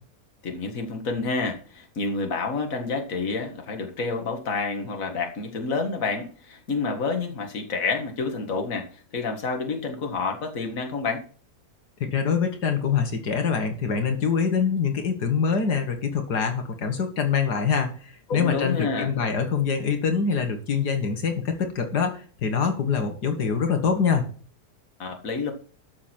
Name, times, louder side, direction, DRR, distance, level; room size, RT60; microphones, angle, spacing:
voice 1, 0.4-11.2 18.3-19.1 25.0-25.5, left 4 dB, 55° left, 4 dB, 2.1 m, -29 dB
voice 2, 12.0-24.2, left 6 dB, 85° left, 5 dB, 2.2 m, -24 dB
12.5 x 7.2 x 4.5 m, 0.42 s
omnidirectional pair, 1.7 m